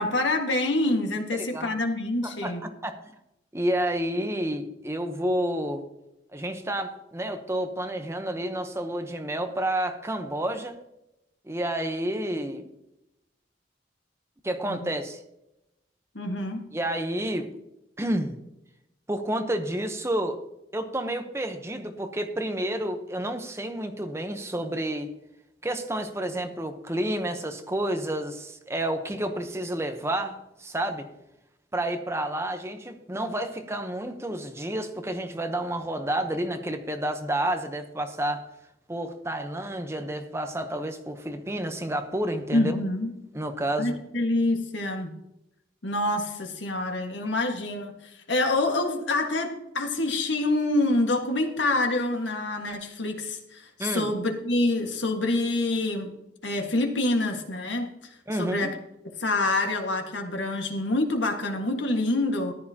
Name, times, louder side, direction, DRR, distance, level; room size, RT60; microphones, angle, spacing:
voice 1, 0.0-2.6 14.7-14.9 16.1-16.7 42.5-43.1 43.8-45.1 45.8-56.1 56.4-57.9 58.3-58.7 59.2-62.5, left 2 dB, 80° left, 4 dB, 1.7 m, -26 dB
voice 2, 1.3-1.7 2.2-3.1 3.5-5.8 6.3-10.8 11.4-12.7 14.4-15.2 16.7-17.5 18.0-18.4 19.1-20.4 20.7-25.1 25.6-31.1 31.7-38.4 38.9-42.8 43.3-44.0 53.8-54.1 58.3-58.7, right 1 dB, 15° right, 7 dB, 0.9 m, -30 dB
14.5 x 11.0 x 2.9 m, 0.86 s
head